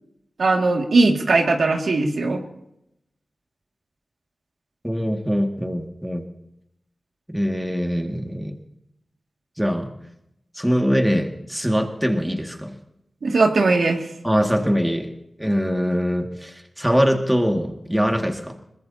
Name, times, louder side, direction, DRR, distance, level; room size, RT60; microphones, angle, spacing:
voice 1, 0.4-2.4 13.2-14.1, right 3 dB, 80° right, 1 dB, 2.2 m, -19 dB
voice 2, 4.8-6.3 7.3-8.6 9.6-9.9 10.5-12.8 14.2-18.6, equal, 5° right, 3 dB, 2.1 m, -23 dB
22.5 x 20.5 x 2.9 m, 0.81 s
cardioid pair, 55°, 0 cm